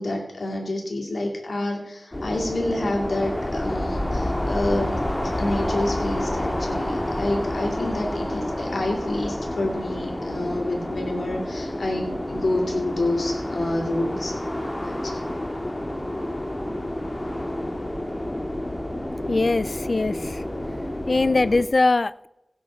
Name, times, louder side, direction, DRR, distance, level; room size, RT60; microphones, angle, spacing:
voice 1, 0.0-5.0 5.4-14.3 14.9-15.3, left 1 dB, 80° left, 1 dB, 2.4 m, -28 dB
sound 1, 2.1-21.6, left 1 dB, 25° left, 1.9 m, -29 dB
voice 2, 19.3-20.4 21.1-22.3, left 3 dB, 55° left, 17 dB, 0.4 m, -21 dB
16.5 x 8.0 x 4.5 m, 0.86 s
wide cardioid pair, 70°, 0 cm